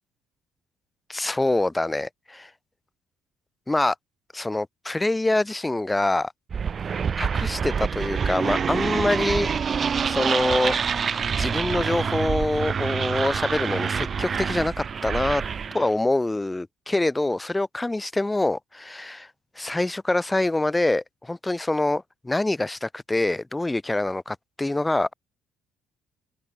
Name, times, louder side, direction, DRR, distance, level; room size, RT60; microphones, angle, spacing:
voice 1, 1.1-2.5 3.7-3.9 4.3-6.3 7.1-9.5 10.1-15.4 15.7-19.3 19.6-25.1, left 2 dB, 15° left, 2.5 m, -25 dB
sound 1, 6.5-15.9, right 6 dB, 40° right, 5.0 m, -26 dB
open air
figure-of-eight pair, 50°, 0 cm